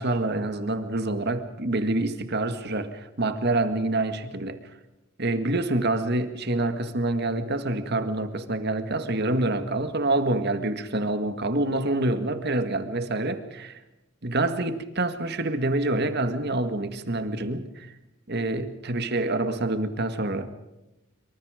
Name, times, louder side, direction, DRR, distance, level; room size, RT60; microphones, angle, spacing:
voice 1, 0.0-4.6 5.2-13.8 14.2-17.9 18.3-20.5, right 2 dB, 50° right, 9 dB, 2.0 m, -27 dB
26.5 x 24.5 x 5.1 m, 0.95 s
head